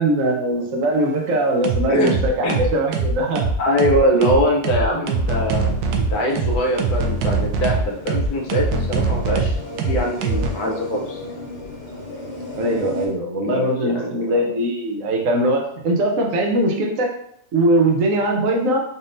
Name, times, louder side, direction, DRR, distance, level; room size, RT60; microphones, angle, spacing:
voice 1, 0.0-3.4 4.9-5.1 12.5-17.1 17.5-18.8, right 1 dB, 55° right, 1 dB, 1.0 m, -21 dB
sound 1, 0.9-1.2 1.6-10.5, right 4 dB, 80° right, 1.3 m, -22 dB
voice 2, 3.6-9.5 9.8-11.2 13.4-14.3, equal, 60° left, 0 dB, 1.1 m, -22 dB
sound 2, 5.2-13.1, left 2 dB, 40° left, 1.4 m, -35 dB
4.1 x 3.5 x 2.5 m, 0.69 s
omnidirectional pair, 2.0 m